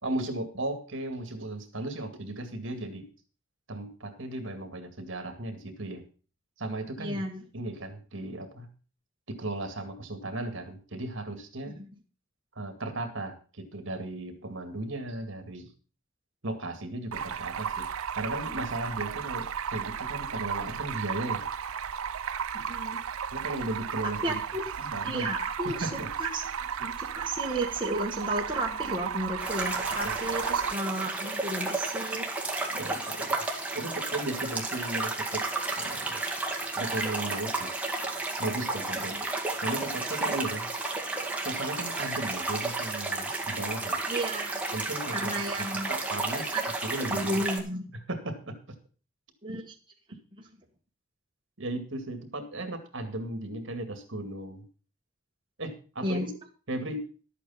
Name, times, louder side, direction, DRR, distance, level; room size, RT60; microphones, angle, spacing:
voice 1, 0.0-3.1 3.7-6.0 6.6-7.2 7.5-8.7 9.3-11.7 12.6-15.7 16.4-17.9 18.1-21.4 23.3-24.4 24.8-25.3 25.6-26.1 30.0-30.4 32.7-33.4 33.7-35.5 35.7-36.2 36.7-37.7 38.4-39.2 39.6-40.7 41.4-44.0 44.7-45.3 45.6-46.5 46.8-47.3 47.9-48.6 49.5-49.6 51.6-54.6 55.6-56.4 56.7-57.0, right 1 dB, 60° right, 7 dB, 2.2 m, -36 dB
voice 2, 7.0-7.4 11.8-11.9 22.5-23.0 24.2-24.6 25.0-25.9 26.2-32.3 39.1-39.2 44.1-44.6 45.1-45.9 46.5-46.6 47.1-47.8 49.4-49.6 56.0-56.3, right 1 dB, 20° right, -1 dB, 1.6 m, -33 dB
Stream, 17.1-30.7, right 7 dB, 75° right, 0.6 m, -34 dB
sound 1, 29.4-47.6, right 2 dB, 5° right, 1.9 m, -32 dB
12.5 x 8.4 x 5.8 m, 0.37 s
head